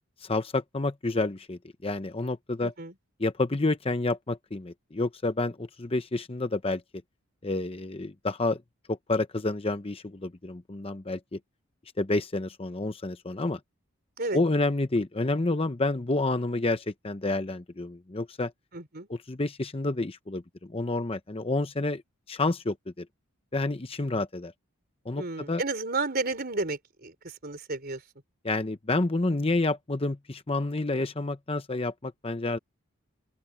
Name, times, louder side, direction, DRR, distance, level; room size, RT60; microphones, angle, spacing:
voice 1, 0.2-2.7 3.2-6.8 7.4-8.6 8.9-11.4 12.0-13.6 14.3-18.5 19.1-22.0 22.3-23.1 23.5-24.5 25.0-25.6 28.4-32.6, left 2 dB, 25° left, 0.8 m, -29 dB
voice 2, 2.6-2.9 14.2-14.4 18.7-19.1 25.2-27.1 27.4-28.0, right 3 dB, 45° right, 4.0 m, -32 dB
open air
head